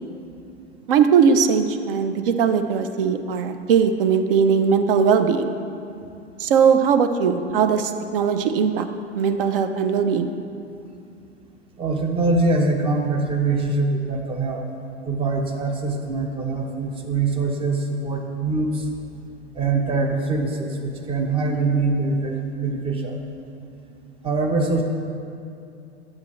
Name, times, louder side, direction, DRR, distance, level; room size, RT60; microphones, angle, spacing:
voice 1, 0.9-5.6 6.4-8.9 9.1-10.3, right 6 dB, 55° right, 8 dB, 0.6 m, -19 dB
voice 2, 11.8-14.6 15.0-18.9 19.5-23.2 24.2-24.8, right 3 dB, 15° right, 3 dB, 0.7 m, -23 dB
9.3 x 7.3 x 3.1 m, 2.6 s
figure-of-eight pair, 90°, 33 cm